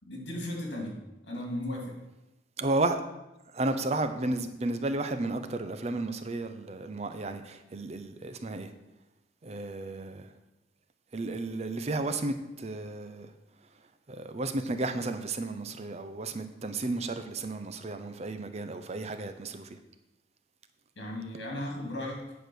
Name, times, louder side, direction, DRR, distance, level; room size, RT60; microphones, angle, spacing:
voice 1, 0.0-1.0 1.3-1.9 21.0-22.2, left 1 dB, 65° left, 0 dB, 2.4 m, -36 dB
voice 2, 2.6-3.0 3.5-8.7 9.4-10.3 11.1-13.3 14.1-19.7, right 2 dB, 35° right, 9 dB, 0.5 m, -33 dB
8.9 x 5.0 x 6.2 m, 0.96 s
head